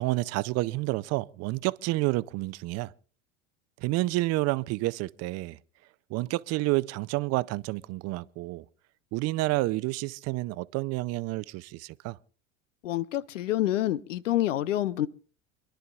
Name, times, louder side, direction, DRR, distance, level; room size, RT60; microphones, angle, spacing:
voice 1, 0.0-2.9 3.8-5.6 6.1-8.6 9.1-12.2, right 20 dB, 45° right, 0.6 m, -29 dB
voice 2, 12.8-15.1, left 13 dB, 80° left, 0.7 m, -27 dB
28.0 x 11.5 x 2.4 m
hypercardioid pair, 85°, 37 cm